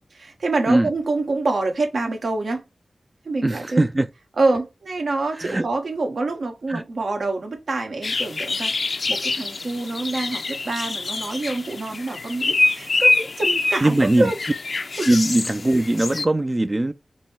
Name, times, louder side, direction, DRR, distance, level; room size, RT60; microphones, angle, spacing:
voice 1, 0.1-2.6 3.2-3.8 4.4-14.4 15.0-15.1, right 3 dB, 85° right, 1.3 m, -26 dB
voice 2, 3.4-4.1 5.4-5.6 6.7-6.8 13.8-14.3 15.1-16.9, right 1 dB, 30° right, 0.3 m, -20 dB
sound 1, 8.0-16.2, left 3 dB, 65° left, 0.4 m, -25 dB
5.3 x 2.1 x 3.3 m
wide cardioid pair, 70°, 0 cm